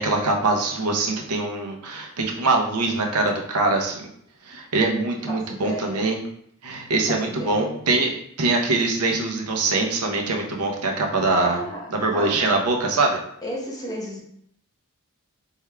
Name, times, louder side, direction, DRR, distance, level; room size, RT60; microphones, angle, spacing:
voice 1, 0.0-4.1 4.4-6.2 6.6-11.6 11.9-13.2, right 3 dB, 85° right, 1 dB, 0.8 m, -23 dB
voice 2, 5.1-6.1 6.9-7.8 11.4-12.6 13.4-14.2, equal, 15° left, -3 dB, 0.9 m, -34 dB
4.5 x 3.5 x 2.2 m, 0.70 s
head